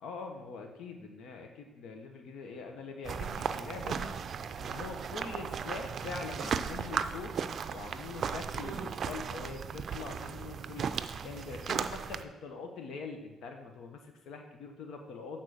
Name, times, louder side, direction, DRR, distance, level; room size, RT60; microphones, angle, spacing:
voice 1, 0.0-4.2 4.6-7.4 7.7-10.8 11.2-15.4, left 4 dB, 80° left, 4 dB, 1.2 m, -43 dB
sound 1, 3.1-12.2, right 6 dB, 55° right, 0.4 m, -36 dB
8.8 x 4.0 x 6.4 m, 1.2 s
cardioid pair, 90°, 0 cm